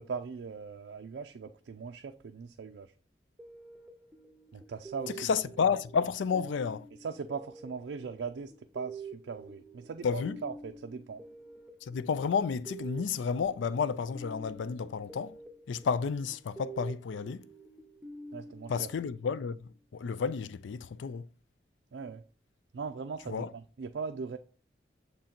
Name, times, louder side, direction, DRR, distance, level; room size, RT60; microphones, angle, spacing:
voice 1, 0.0-2.9 4.5-5.3 5.6-5.7 7.0-11.2 18.3-18.9 21.9-22.2 22.7-24.4, right 5 dB, 75° right, 0.4 m, -40 dB
sound 1, 3.4-19.7, right 3 dB, 5° right, 0.6 m, -48 dB
voice 2, 5.1-6.9 10.0-10.4 11.8-15.4 15.7-17.4 18.7-21.3 23.3-23.5, left 6 dB, 85° left, 0.4 m, -31 dB
6.9 x 3.8 x 4.3 m
head